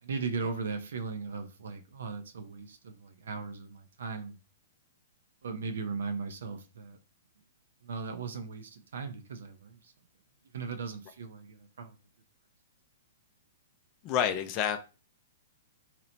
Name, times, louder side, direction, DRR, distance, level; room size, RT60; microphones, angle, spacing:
voice 1, 0.0-4.4 5.4-7.0 7.8-9.9 10.5-12.0, right 4 dB, 75° right, 0.4 m, -38 dB
voice 2, 14.0-14.8, left 9 dB, 35° left, 0.3 m, -28 dB
2.8 x 2.0 x 2.7 m
hypercardioid pair, 125°, 0 cm